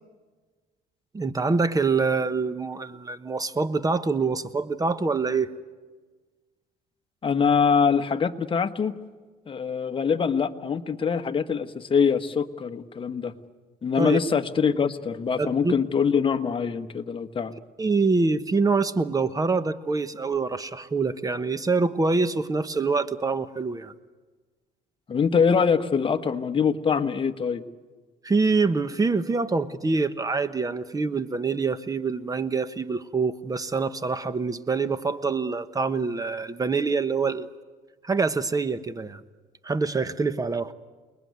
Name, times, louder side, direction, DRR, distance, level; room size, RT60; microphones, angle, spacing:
voice 1, 1.1-5.5 14.0-14.2 15.4-15.7 17.8-23.9 28.2-37.5 38.0-39.2 39.6-40.7, right 4 dB, 20° right, 13 dB, 1.1 m, -25 dB
voice 2, 7.2-8.9 9.5-13.3 13.8-17.5 25.1-27.6, left 6 dB, 30° left, 7 dB, 1.4 m, -24 dB
28.5 x 20.5 x 9.5 m, 1.4 s
cardioid pair, 110°, 17 cm